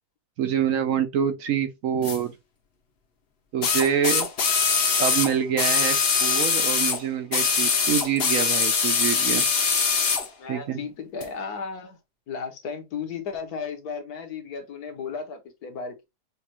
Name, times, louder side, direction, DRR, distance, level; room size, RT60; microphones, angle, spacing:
voice 1, 0.4-2.3 3.5-4.3 5.0-9.5 10.5-10.8, right 8 dB, 65° right, 0.9 m, -26 dB
sound 1, 2.0-2.2 3.6-7.0 7.3-10.3 11.2-11.3, left 5 dB, 50° left, 0.8 m, -22 dB
voice 2, 10.4-12.0 12.3-16.0, left 5 dB, 70° left, 1.5 m, -34 dB
6.5 x 2.3 x 2.9 m
omnidirectional pair, 1.7 m